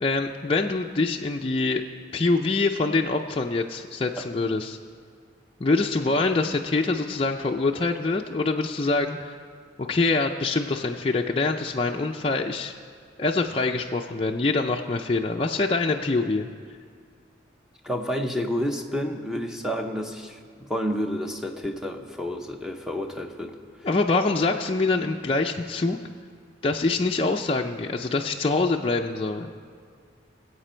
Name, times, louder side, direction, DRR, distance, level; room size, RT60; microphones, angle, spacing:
voice 1, 0.0-1.8 2.1-4.8 5.6-9.4 9.8-12.7 13.2-16.5 23.8-26.0 26.6-29.5, left 3 dB, 30° left, 1 dB, 0.4 m, -25 dB
voice 2, 17.8-23.6, equal, 5° right, 3 dB, 0.8 m, -30 dB
21.0 x 8.2 x 4.4 m, 2.1 s
head